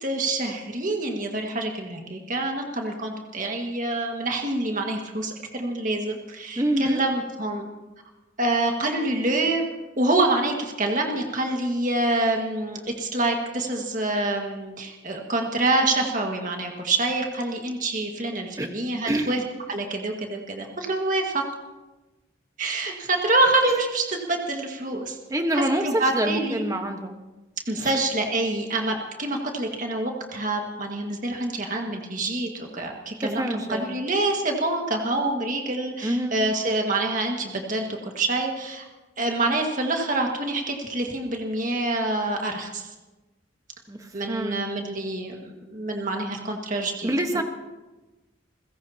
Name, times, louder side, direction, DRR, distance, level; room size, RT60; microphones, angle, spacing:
voice 1, 0.0-7.7 8.4-9.6 10.0-19.4 19.7-21.5 22.6-25.2 25.5-26.7 27.7-38.9 39.2-42.9 44.1-47.4, right 2 dB, 40° right, 2 dB, 1.8 m, -26 dB
voice 2, 6.6-7.0 18.6-18.7 19.1-19.4 25.3-27.2 27.8-27.9 33.2-34.0 36.0-36.4 43.9-44.6 47.0-47.4, right 1 dB, 15° right, 5 dB, 1.2 m, -26 dB
29.0 x 16.0 x 2.9 m, 1.1 s
head